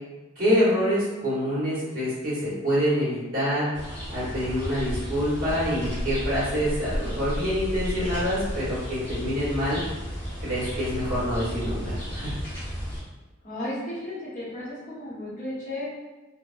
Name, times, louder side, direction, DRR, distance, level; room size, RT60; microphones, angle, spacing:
voice 1, 0.4-3.7 4.1-9.8 10.4-12.3, equal, 45° right, -9 dB, 1.3 m, -26 dB
sound 1, 3.7-13.0, equal, 10° left, 0.9 m, -33 dB
voice 2, 13.4-15.9, left 1 dB, 40° left, -8 dB, 0.9 m, -34 dB
3.3 x 2.1 x 2.5 m, 1.2 s
head